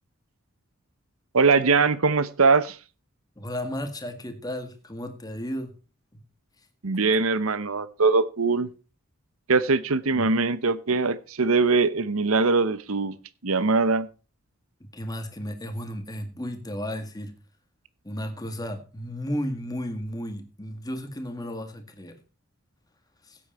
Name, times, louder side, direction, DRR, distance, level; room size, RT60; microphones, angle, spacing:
voice 1, 1.3-2.8 6.8-8.7 9.5-13.2 13.4-14.1, right 4 dB, 80° right, 16 dB, 0.9 m, -22 dB
voice 2, 3.4-5.7 6.1-6.2 10.1-10.3 14.8-17.4 18.0-22.2 23.3-23.4, equal, 20° left, 7 dB, 1.8 m, -34 dB
16.0 x 8.6 x 4.3 m, 0.33 s
head